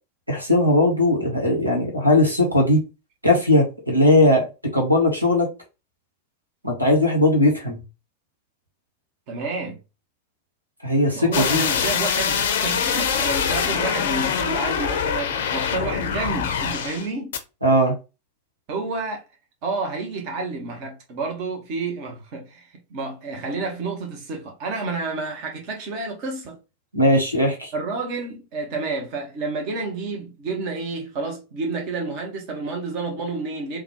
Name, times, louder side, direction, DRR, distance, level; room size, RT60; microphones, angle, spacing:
voice 1, 0.3-2.8 3.2-4.4 4.7-5.5 6.6-7.8 10.8-11.6 17.6-17.9 26.9-27.7, left 1 dB, 85° right, 1.2 m, -18 dB
voice 2, 9.3-9.8 11.1-17.3 18.7-19.2 19.6-26.6 27.7-33.8, right 3 dB, 45° right, 1.0 m, -30 dB
sound 1, 11.3-17.1 17.3-17.4, left 7 dB, 60° left, 0.6 m, -24 dB
3.8 x 2.3 x 3.0 m
figure-of-eight pair, 90°, 0 cm